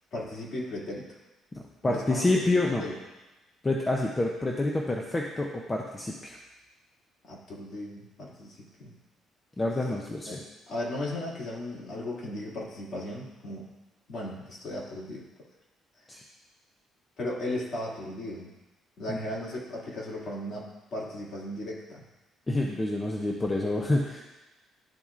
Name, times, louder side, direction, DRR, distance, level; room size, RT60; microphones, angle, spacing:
voice 1, 0.1-1.1 1.8-2.3 2.8-2.9 7.2-8.9 10.2-10.4 10.7-13.6 14.1-15.2 17.2-18.5 19.0-22.0, left 1 dB, 45° left, -5 dB, 2.1 m, -36 dB
voice 2, 1.5-2.8 3.6-6.4 9.6-10.4 16.1-16.2 19.1-19.2 22.5-24.2, left 2 dB, 15° left, 0 dB, 0.6 m, -28 dB
12.0 x 4.1 x 2.4 m, 1.0 s
cardioid pair, 130°, 0 cm